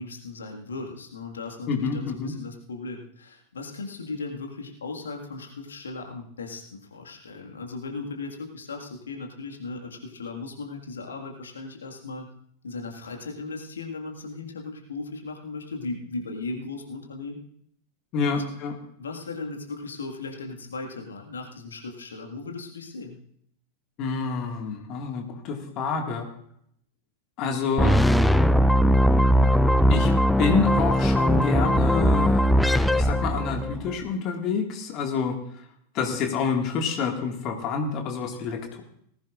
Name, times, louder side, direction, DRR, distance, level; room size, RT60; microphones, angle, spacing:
voice 1, 0.0-12.3 12.6-17.4 18.2-18.4 19.0-23.2, left 3 dB, 70° left, 2 dB, 1.8 m, -37 dB
voice 2, 1.7-2.3 18.1-18.8 24.0-26.3 27.4-28.0 29.9-35.6 35.9-38.8, left 5 dB, 40° left, 3 dB, 1.9 m, -28 dB
sound 1, 27.8-33.9, equal, ahead, 0.4 m, -20 dB
19.0 x 15.0 x 2.5 m, 0.68 s
figure-of-eight pair, 90°, 0 cm